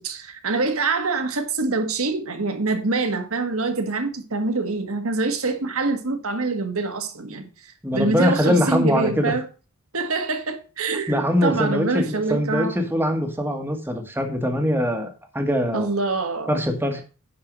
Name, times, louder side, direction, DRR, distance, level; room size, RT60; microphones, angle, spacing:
voice 1, 0.0-9.5 9.9-12.8 15.7-16.5, right 3 dB, 65° right, 1.8 m, -25 dB
voice 2, 7.8-9.3 11.1-15.9 16.5-17.0, equal, 10° right, 1.6 m, -22 dB
10.5 x 4.8 x 6.2 m
head